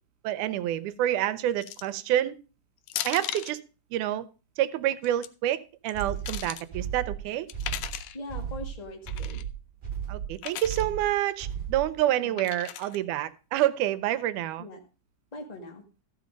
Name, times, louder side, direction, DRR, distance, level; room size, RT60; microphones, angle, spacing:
voice 1, 0.2-2.3 3.0-3.6 3.9-4.3 4.6-7.5 10.1-14.7, right 12 dB, 85° right, 14 dB, 2.2 m, -28 dB
sound 1, 1.6-2.0 2.9-3.6 4.9-5.3 5.9-6.6 7.5-8.2 9.1-9.4 10.4-10.8 12.4-13.0, left 13 dB, 80° left, 2.0 m, -37 dB
sound 2, 5.9-12.0, right 8 dB, 20° right, 2.1 m, -35 dB
voice 2, 8.1-9.4 12.2-12.4 14.6-14.8 15.3-15.8, left 2 dB, 20° left, 3 dB, 1.0 m, -41 dB
14.0 x 5.7 x 5.1 m, 0.34 s
omnidirectional pair, 3.5 m